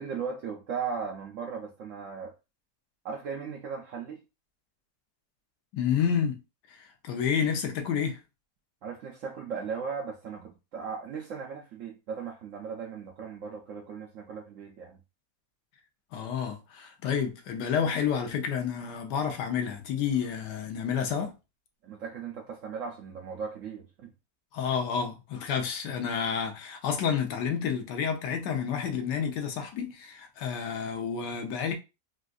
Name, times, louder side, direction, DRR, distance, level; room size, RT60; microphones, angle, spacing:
voice 1, 0.0-2.3 3.0-4.2 8.8-15.0 21.8-24.1, right 6 dB, 70° right, 0.7 m, -37 dB
voice 2, 5.7-6.4 6.7-8.2 16.1-21.3 24.5-31.7, left 7 dB, 85° left, 1.3 m, -30 dB
3.8 x 2.4 x 2.4 m
omnidirectional pair, 1.8 m